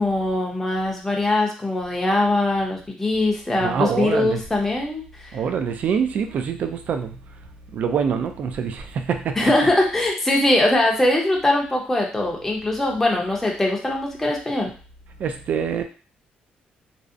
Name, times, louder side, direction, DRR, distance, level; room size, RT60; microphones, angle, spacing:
voice 1, 0.0-5.4 9.4-14.7, left 2 dB, 10° left, -1 dB, 0.5 m, -21 dB
voice 2, 3.6-4.4 5.3-7.2 7.7-9.5 15.2-15.8, right 7 dB, 55° right, 7 dB, 0.3 m, -25 dB
2.6 x 2.0 x 2.5 m, 0.38 s
cardioid pair, 135°, 3 cm